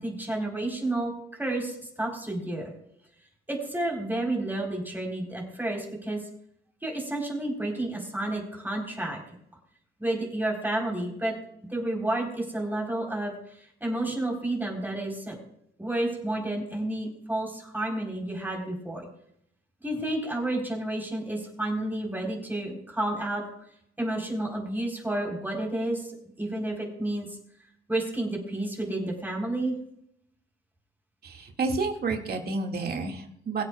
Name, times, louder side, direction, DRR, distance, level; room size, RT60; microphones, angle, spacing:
voice 1, 0.0-2.7 3.5-6.2 6.8-9.2 10.0-11.3 11.7-15.4 15.8-19.1 19.8-23.4 24.0-26.1 26.4-27.3 27.9-29.7, right 1 dB, 10° right, -1 dB, 4.1 m, -30 dB
voice 2, 31.2-33.6, right 3 dB, 50° right, 2 dB, 2.2 m, -30 dB
23.0 x 8.1 x 2.4 m, 0.73 s
cardioid pair, 90°, 20 cm